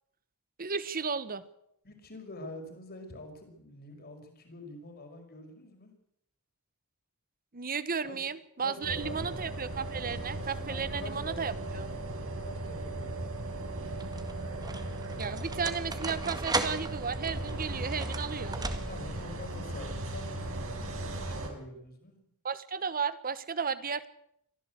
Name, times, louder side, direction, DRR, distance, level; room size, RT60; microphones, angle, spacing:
voice 1, 0.6-1.4 7.5-11.9 15.2-18.6 22.4-24.1, right 6 dB, 40° right, 15 dB, 1.1 m, -34 dB
voice 2, 1.8-5.9 8.0-8.2 8.6-9.3 10.7-11.5 12.4-13.4 18.8-22.2, left 2 dB, 45° left, 5 dB, 5.6 m, -46 dB
sound 1, 8.8-21.5, right 2 dB, 65° right, 5.3 m, -37 dB
sound 2, 12.4-12.9 13.8-19.3, right 3 dB, 20° right, 1.9 m, -37 dB
23.5 x 15.5 x 8.2 m, 0.75 s
head